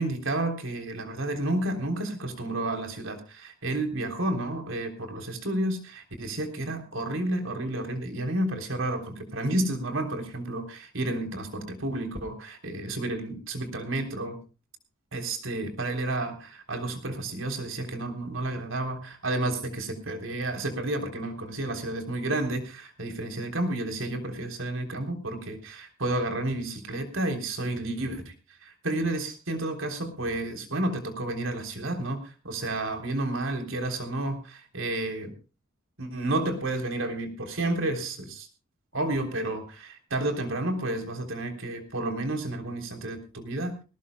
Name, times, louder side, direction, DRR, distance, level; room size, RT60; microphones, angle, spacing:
voice 1, 0.0-14.4 15.1-28.3 28.6-35.3 36.0-38.5 38.9-43.8, right 1 dB, 65° right, 6 dB, 3.5 m, -31 dB
21.0 x 18.0 x 2.2 m, 0.32 s
head